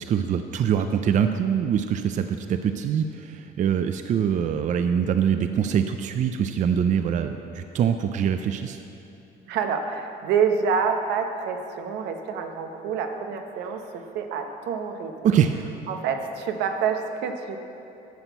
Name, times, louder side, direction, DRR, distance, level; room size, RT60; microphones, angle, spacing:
voice 1, 0.0-8.8 15.2-15.6, right 8 dB, 45° right, 8 dB, 0.5 m, -24 dB
voice 2, 9.5-15.1 15.9-17.6, right 6 dB, 85° right, 5 dB, 1.0 m, -27 dB
11.5 x 6.1 x 6.8 m, 2.8 s
cardioid pair, 110°, 17 cm